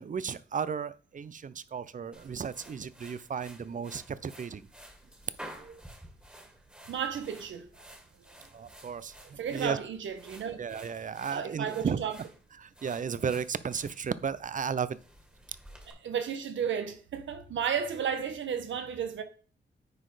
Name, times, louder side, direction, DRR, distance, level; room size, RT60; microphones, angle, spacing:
voice 1, 0.0-4.6 5.6-5.8 8.5-9.8 10.6-12.0 12.6-15.0, right 6 dB, 45° right, 0.6 m, -34 dB
sound 1, 2.1-15.9, right 1 dB, 5° right, 2.0 m, -52 dB
voice 2, 6.9-7.7 9.4-10.6 11.3-12.2 15.9-19.2, right 7 dB, 85° right, 1.2 m, -33 dB
9.6 x 4.2 x 4.9 m
cardioid pair, 90°, 19 cm